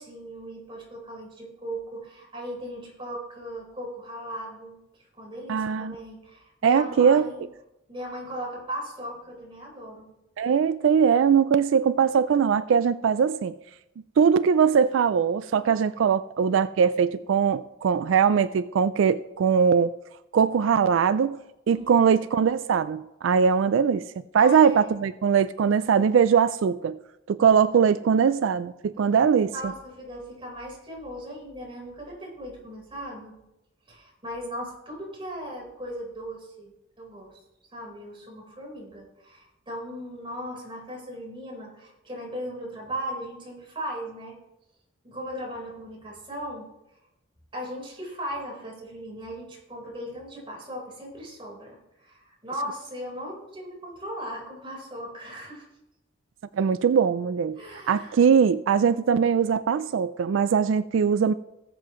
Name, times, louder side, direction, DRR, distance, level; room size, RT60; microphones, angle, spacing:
voice 1, 0.0-4.8 5.2-7.4 7.9-10.1 21.7-22.0 24.4-24.9 29.5-33.4 33.9-36.7 37.0-37.4 37.7-44.3 45.0-46.7 47.5-55.7 57.6-58.2, equal, 25° right, -2 dB, 4.2 m, -37 dB
voice 2, 5.5-6.0 6.6-7.3 10.4-13.5 14.2-19.9 20.3-21.4 21.7-24.1 24.3-27.0 27.3-29.7 56.5-57.6 57.9-61.3, right 6 dB, 85° right, 14 dB, 0.3 m, -21 dB
19.0 x 7.7 x 3.1 m, 0.91 s
head